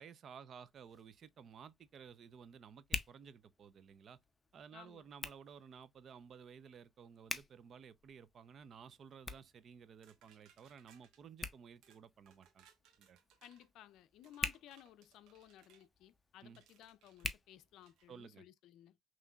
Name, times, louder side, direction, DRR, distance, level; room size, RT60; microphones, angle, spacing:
voice 1, 0.0-4.2 4.5-12.7 13.0-13.2 16.4-16.6 18.1-18.4, right 7 dB, 45° right, 0.5 m, -55 dB
Hands, 0.6-18.3, left 3 dB, 20° left, 0.6 m, -49 dB
voice 2, 4.7-5.0 13.4-19.0, left 12 dB, 70° left, 0.4 m, -58 dB
sound 1, 10.0-11.2 11.8-12.0 12.3-13.7 14.2-15.9 16.5-17.3 17.8-18.1, right 8 dB, 80° right, 1.1 m, -68 dB
5.7 x 3.1 x 2.3 m
cardioid pair, 105°, 0 cm